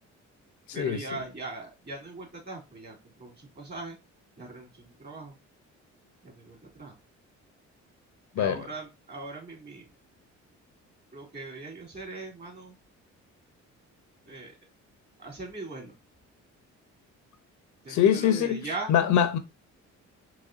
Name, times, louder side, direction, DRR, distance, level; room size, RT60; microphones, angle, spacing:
voice 1, 0.7-4.0 4.4-5.4 6.2-7.0 8.4-9.9 11.1-12.7 14.3-14.6 15.2-16.0 17.8-19.0, right 3 dB, 35° right, 2.2 m, -40 dB
voice 2, 17.9-18.6 18.9-19.4, left 9 dB, 70° left, 0.6 m, -23 dB
4.1 x 3.1 x 2.5 m
cardioid pair, 90°, 30 cm